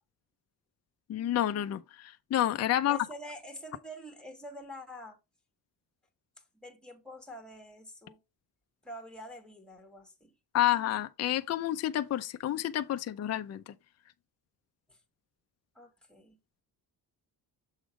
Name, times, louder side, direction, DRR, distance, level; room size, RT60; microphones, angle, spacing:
voice 1, 1.1-3.0 10.5-13.6, left 12 dB, 40° left, 0.5 m, -29 dB
voice 2, 2.8-5.2 6.5-8.2 8.8-10.3 14.9-15.0 15.7-16.4, equal, ahead, 1.5 m, -46 dB
7.3 x 3.6 x 4.8 m
cardioid pair, 170°, 39 cm